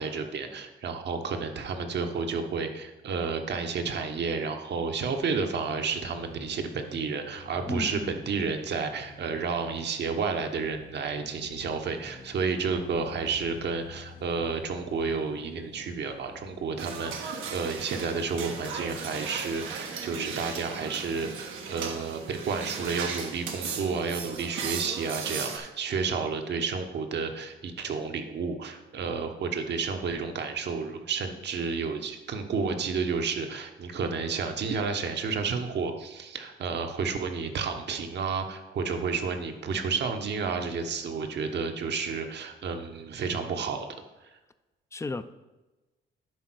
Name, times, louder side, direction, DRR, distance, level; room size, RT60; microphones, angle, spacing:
voice 1, 0.0-43.9, right 5 dB, 60° right, 5 dB, 1.1 m, -31 dB
sound 1, 5.7-19.6, left 6 dB, 55° left, 1.4 m, -50 dB
voice 2, 7.7-8.2 44.9-45.2, left 3 dB, 15° left, 13 dB, 0.5 m, -33 dB
sound 2, 16.8-25.6, right 5 dB, 85° right, 1.2 m, -36 dB
10.5 x 3.7 x 6.2 m, 1.1 s
cardioid pair, 90°, 20 cm